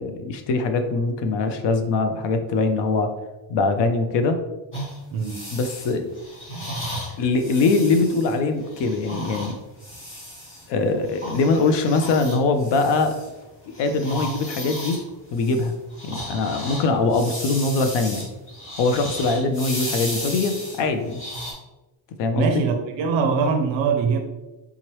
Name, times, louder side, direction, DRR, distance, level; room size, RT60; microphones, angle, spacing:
voice 1, 0.0-3.1 3.5-4.4 5.5-6.1 7.2-9.6 10.7-13.2 13.6-15.0 15.3-15.7 16.1-18.3 18.8-21.2 22.2-22.6, left 3 dB, 60° left, 7 dB, 0.5 m, -22 dB
sound 1, 4.7-10.7 11.0-13.5 13.7-21.5, equal, 25° left, 0.9 m, -35 dB
voice 2, 5.1-5.4 22.3-24.2, right 5 dB, 70° right, 5 dB, 0.5 m, -22 dB
3.6 x 3.0 x 3.0 m, 1.1 s
cardioid pair, 180°, 48 cm